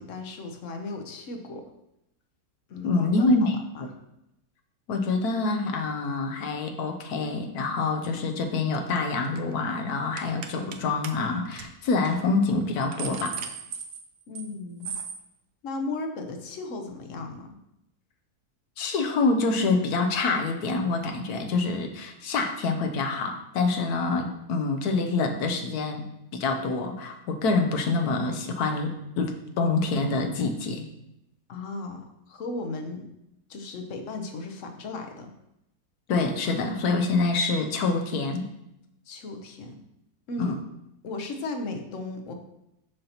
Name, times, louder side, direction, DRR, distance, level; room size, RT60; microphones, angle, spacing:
voice 1, 0.0-1.6 2.7-3.9 14.3-14.9 15.6-17.6 31.5-33.1 33.5-35.3 39.1-39.8 40.3-40.6 41.0-42.3, left 3 dB, 60° left, 4 dB, 1.1 m, -36 dB
voice 2, 2.8-3.6 4.9-13.4 18.8-26.0 26.3-30.8 36.1-38.5 40.4-40.6, left 3 dB, 80° left, 4 dB, 1.2 m, -26 dB
sound 1, 8.7-9.0 9.2-9.5 10.2-10.8 11.0-11.1 11.5-11.7 12.1-12.2 12.6-14.5 14.8-15.2, right 6 dB, 65° right, 0.8 m, -37 dB
6.6 x 5.6 x 2.9 m, 0.84 s
omnidirectional pair, 1.6 m